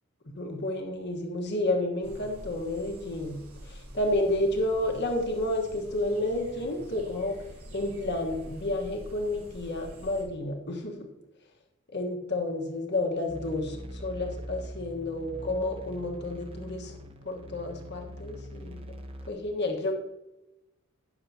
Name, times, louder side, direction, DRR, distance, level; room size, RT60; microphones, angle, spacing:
voice 1, 0.3-7.4 7.7-11.1 11.9-17.0 17.2-18.8 19.3-19.9, left 1 dB, 55° left, 2 dB, 1.4 m, -30 dB
sound 1, 2.0-10.2, equal, 90° right, 3.7 m, -46 dB
sound 2, 13.3-19.3, equal, 25° right, 0.8 m, -42 dB
16.0 x 6.7 x 2.8 m, 0.94 s
head